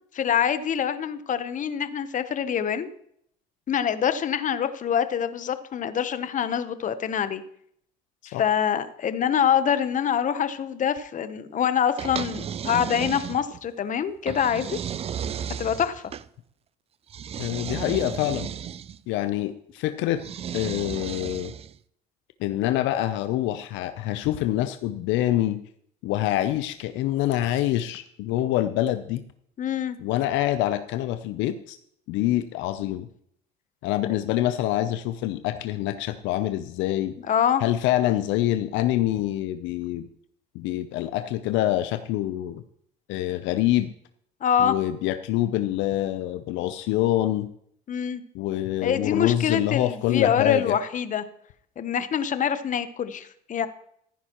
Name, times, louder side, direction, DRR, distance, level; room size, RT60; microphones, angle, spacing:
voice 1, 0.1-2.9 3.7-7.4 8.3-14.8 15.6-16.0 29.6-30.0 37.2-37.6 44.4-44.8 47.9-48.2 48.8-51.2 51.8-53.7, left 8 dB, 40° left, 12 dB, 0.9 m, -25 dB
sound 1, 12.0-13.7 14.3-16.3 17.1-19.0 20.2-21.8, right 8 dB, 30° right, 0.4 m, -34 dB
voice 2, 17.4-18.5 19.1-20.2 20.5-21.5 22.4-25.6 26.0-29.2 30.0-31.8 32.1-33.1 33.8-37.1 37.6-40.1 40.5-42.6 43.1-43.9 44.6-47.5 48.3-50.7, left 13 dB, 70° left, 10 dB, 0.6 m, -26 dB
14.5 x 10.0 x 3.0 m, 0.68 s
supercardioid pair, 90°, 20 cm